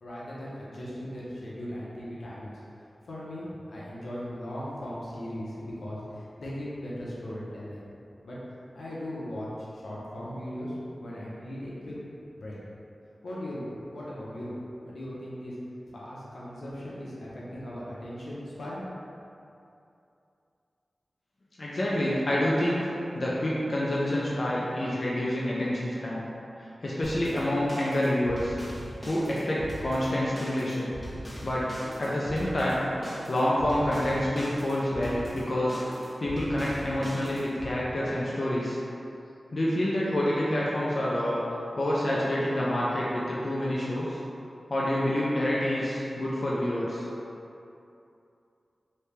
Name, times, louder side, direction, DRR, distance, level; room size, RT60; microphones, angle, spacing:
voice 1, 0.0-2.5 3.0-7.8 8.2-8.4 8.7-11.9 12.3-12.6 13.2-13.6 13.9-14.5 14.8-15.5 15.9-18.8, equal, 85° left, -7 dB, 0.8 m, -38 dB
voice 2, 21.6-26.3 26.6-28.5 29.1-30.9 31.4-31.6 32.0-32.8 33.3-38.8 39.5-41.4 41.8-44.2 44.7-47.0, left 1 dB, 50° left, -7 dB, 0.5 m, -27 dB
sound 1, 27.0-37.7, equal, 10° left, 1.1 m, -41 dB
3.2 x 2.8 x 3.2 m, 2.7 s
wide cardioid pair, 70°, 0 cm